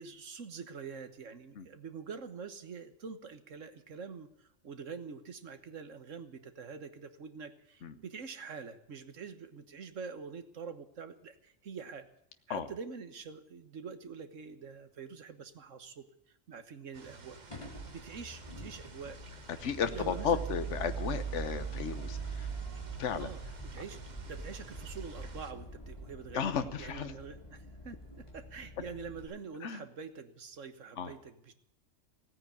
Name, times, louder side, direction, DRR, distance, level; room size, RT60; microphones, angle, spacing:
voice 1, 0.0-12.1 12.5-16.1 16.5-17.4 17.6-19.2 19.9-20.4 23.1-26.5 26.8-31.5, right 5 dB, 90° right, 10 dB, 1.7 m, -45 dB
sound 1, 16.9-25.5, right 4 dB, 40° right, 1.2 m, -53 dB
sound 2, 17.5-29.3, right 4 dB, 25° left, 3.9 m, -42 dB
voice 2, 19.6-22.5 23.0-23.3 26.3-27.1 29.6-29.8 31.0-31.1, left 7 dB, 75° left, 10 dB, 1.3 m, -34 dB
17.0 x 9.5 x 8.6 m, 0.78 s
omnidirectional pair, 1.3 m